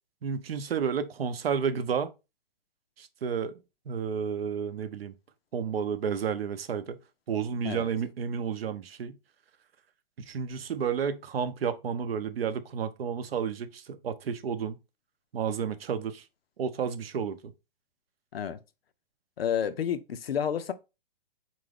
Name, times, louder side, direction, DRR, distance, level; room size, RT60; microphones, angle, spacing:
voice 1, 0.2-2.1 3.0-3.6 3.9-5.1 5.5-7.0 7.3-9.2 10.2-14.8 15.3-16.2 16.6-17.5, right 7 dB, 85° right, 0.6 m, -31 dB
voice 2, 19.4-20.7, left 8 dB, 90° left, 0.5 m, -30 dB
3.8 x 2.6 x 3.4 m
hypercardioid pair, 125°, 29 cm